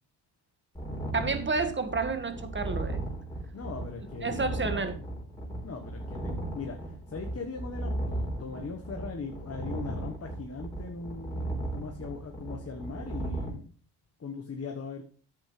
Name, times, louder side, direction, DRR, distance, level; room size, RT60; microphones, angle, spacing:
sound 1, 0.7-13.5, right 1 dB, 10° left, 4.1 m, -36 dB
voice 1, 1.1-3.0 4.2-5.0, right 4 dB, 25° right, 8 dB, 1.7 m, -30 dB
voice 2, 3.5-5.0 5.6-13.7 14.2-15.0, left 4 dB, 35° left, 3 dB, 1.3 m, -40 dB
10.0 x 8.1 x 3.3 m, 0.39 s
cardioid pair, 80°, 44 cm